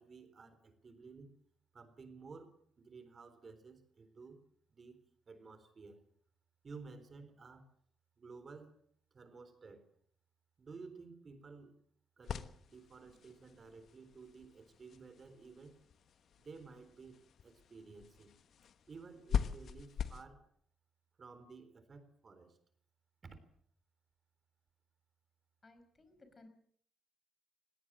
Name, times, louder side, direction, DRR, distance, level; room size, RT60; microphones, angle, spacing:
voice 1, 0.0-1.3 1.7-4.4 4.7-6.0 6.6-7.7 8.2-8.8 9.1-9.9 10.6-11.8 12.2-15.8 16.4-18.3 18.9-20.5 21.2-22.6 23.2-23.4, right 4 dB, 40° right, 11 dB, 3.9 m, -54 dB
sound 1, 12.2-20.2, left 8 dB, 60° left, 1.2 m, -43 dB
voice 2, 25.6-26.5, left 2 dB, 30° left, 9 dB, 5.4 m, -60 dB
20.5 x 17.0 x 7.6 m, 0.63 s
cardioid pair, 90°, 0 cm